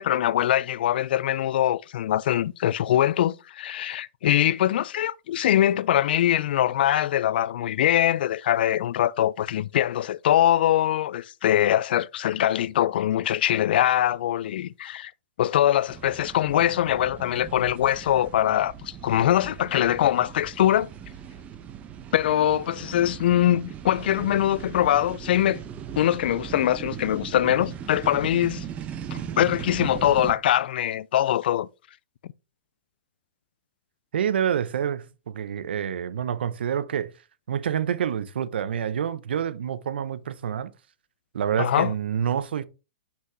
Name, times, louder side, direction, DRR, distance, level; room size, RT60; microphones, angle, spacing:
voice 1, 0.0-15.1 15.4-20.9 22.1-25.6 26.0-28.6 29.1-31.7 41.6-41.9, left 12 dB, 65° left, 0.4 m, -23 dB
sound 1, 15.9-30.3, right 9 dB, 25° right, 0.9 m, -38 dB
voice 2, 34.1-37.1 37.5-40.7 41.3-42.6, right 8 dB, 75° right, 0.6 m, -27 dB
5.8 x 5.6 x 3.0 m
hypercardioid pair, 125°, 6 cm